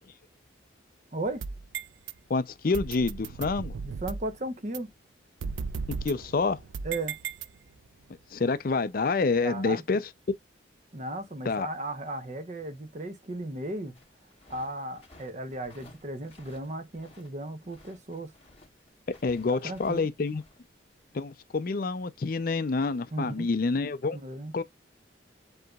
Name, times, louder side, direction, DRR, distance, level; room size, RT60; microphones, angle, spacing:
voice 1, 1.1-1.5 3.8-4.9 6.8-7.2 9.4-9.8 10.9-14.0 14.5-18.3 19.5-20.1 23.1-23.5 24.1-24.5, right 2 dB, 40° right, 0.8 m, -35 dB
sound 1, 1.2-2.1 2.7-4.3 4.7-4.8 5.4-7.9, right 5 dB, 85° right, 0.4 m, -36 dB
voice 2, 2.3-3.7 6.0-6.6 8.3-10.1 11.4-11.7 19.1-20.4 21.1-24.2 24.5-24.6, left 4 dB, 50° left, 0.4 m, -27 dB
sound 2, 13.9-17.3 17.6-20.6, left 2 dB, 30° left, 2.2 m, -56 dB
7.8 x 2.9 x 2.3 m
head